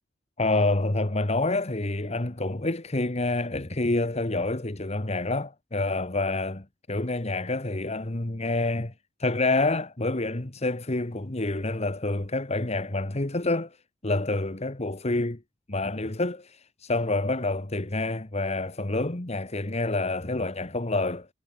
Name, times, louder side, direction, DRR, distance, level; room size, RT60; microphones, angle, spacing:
voice 1, 0.4-8.9 9.2-13.8 14.0-15.4 15.7-21.3, left 2 dB, 35° left, 1.5 m, -28 dB
head